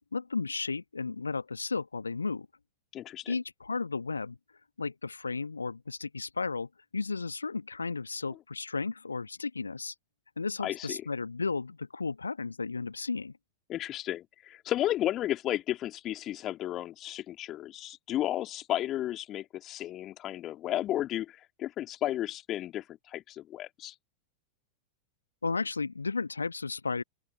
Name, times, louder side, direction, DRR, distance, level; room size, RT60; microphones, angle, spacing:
voice 1, 0.1-2.5 3.3-4.4 4.8-9.9 10.4-13.3 25.4-27.0, left 4 dB, 80° left, 1.6 m, -34 dB
voice 2, 2.9-3.4 10.6-11.0 13.7-23.9, left 13 dB, 30° left, 2.8 m, -33 dB
open air
figure-of-eight pair, 90°, 0 cm